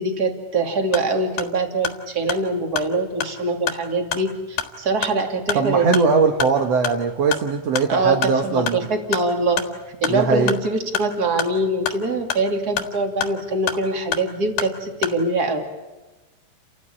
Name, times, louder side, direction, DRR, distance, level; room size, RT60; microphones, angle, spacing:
voice 1, 0.0-6.1 7.9-9.6 10.0-15.6, right 2 dB, 30° right, 4 dB, 2.2 m, -23 dB
sound 1, 0.8-15.2, left 8 dB, 60° left, 3.3 m, -31 dB
voice 2, 5.5-8.9 10.1-10.5, right 5 dB, 75° right, 4 dB, 1.4 m, -20 dB
30.0 x 15.0 x 9.9 m, 1.1 s
omnidirectional pair, 5.1 m